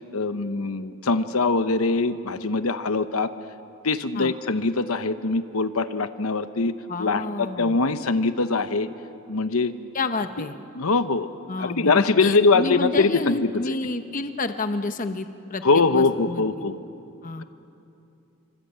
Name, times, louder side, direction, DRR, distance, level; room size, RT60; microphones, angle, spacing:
voice 1, 0.1-3.3 3.8-6.7 7.0-8.9 9.3-9.7 10.4-10.5 10.7-11.3 11.6-13.7 15.6-16.8, left 3 dB, 75° left, 11 dB, 0.9 m, -22 dB
voice 2, 6.9-7.8 9.9-10.5 11.5-15.6 15.9-16.5 17.2-17.4, left 3 dB, 35° left, 8 dB, 1.0 m, -29 dB
26.5 x 25.0 x 8.9 m, 2.8 s
head